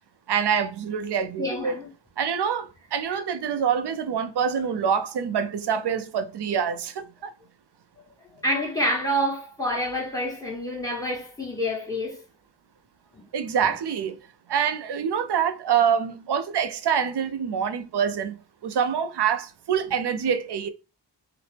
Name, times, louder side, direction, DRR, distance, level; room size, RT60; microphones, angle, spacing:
voice 1, 0.3-1.7 2.2-7.3 13.3-14.2 14.5-18.4 18.6-20.7, right 7 dB, 65° right, 0.5 m, -25 dB
voice 2, 1.4-1.9 8.4-12.2 13.1-13.2, equal, 10° left, 1.2 m, -27 dB
2.8 x 2.0 x 3.2 m
wide cardioid pair, 65°, 44 cm